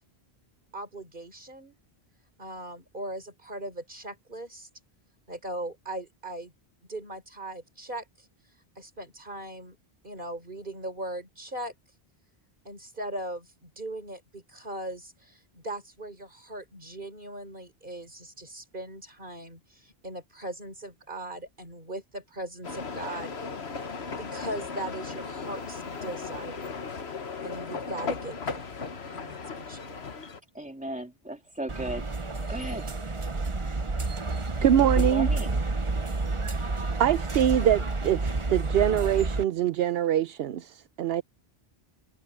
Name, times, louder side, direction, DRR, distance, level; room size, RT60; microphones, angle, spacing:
voice 1, 0.7-1.8 2.4-4.7 5.3-6.5 6.9-8.3 8.8-9.8 10.0-11.8 12.6-23.3 24.2-26.8 27.4-28.8 29.1-30.0, right 1 dB, 55° right, 4.6 m, -39 dB
sound 1, 22.6-30.4, left 5 dB, 85° left, 1.6 m, -36 dB
voice 2, 30.5-32.1 32.5-32.8 34.9-35.6, right 1 dB, 5° right, 3.1 m, -36 dB
sound 2, 31.7-39.4, right 3 dB, 30° right, 1.1 m, -29 dB
voice 3, 34.6-35.3 37.0-41.2, right 10 dB, 75° right, 0.8 m, -24 dB
omnidirectional pair, 1.0 m